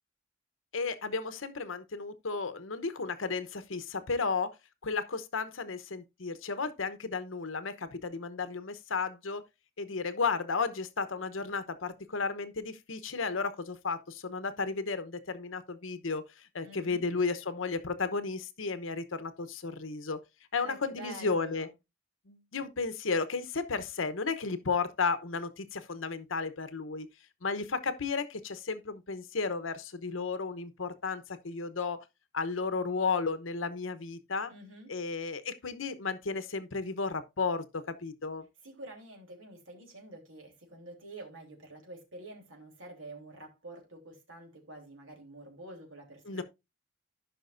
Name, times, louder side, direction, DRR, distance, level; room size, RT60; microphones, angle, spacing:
voice 1, 0.7-4.5 4.8-9.4 9.8-16.2 16.5-20.2 20.5-21.7 22.3-27.1 27.4-32.0 32.3-34.5 34.9-38.5 46.2-46.4, left 4 dB, 90° left, 0.9 m, -33 dB
voice 2, 16.6-17.0 20.6-21.7 34.5-34.9 38.6-46.4, right 2 dB, 90° right, 3.2 m, -48 dB
14.5 x 5.8 x 2.5 m
head